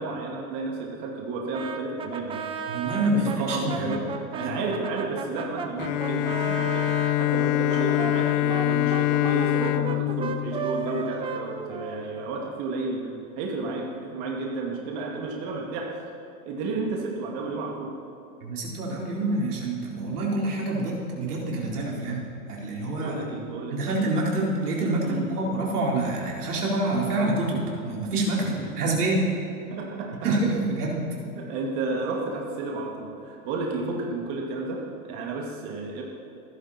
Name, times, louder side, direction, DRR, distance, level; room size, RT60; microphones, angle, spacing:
voice 1, 0.0-2.5 3.1-16.0 16.5-18.0 23.0-23.9 25.0-25.3 28.4-28.9 29.2-29.3 29.7-30.3 31.3-36.0, right 3 dB, 40° right, -1 dB, 2.3 m, -32 dB
Brass instrument, 1.5-7.2 7.7-12.5, right 5 dB, 10° right, 0.6 m, -35 dB
voice 2, 2.7-3.9 4.4-4.6 18.4-23.3 23.7-28.4 28.8-29.3 30.2-31.1 33.8-33.9, right 2 dB, 85° right, -3 dB, 4.1 m, -27 dB
Bowed string instrument, 5.8-11.5, left 16 dB, 40° left, 0.6 m, -25 dB
26.5 x 11.0 x 4.3 m, 2.8 s
hypercardioid pair, 135°, 44 cm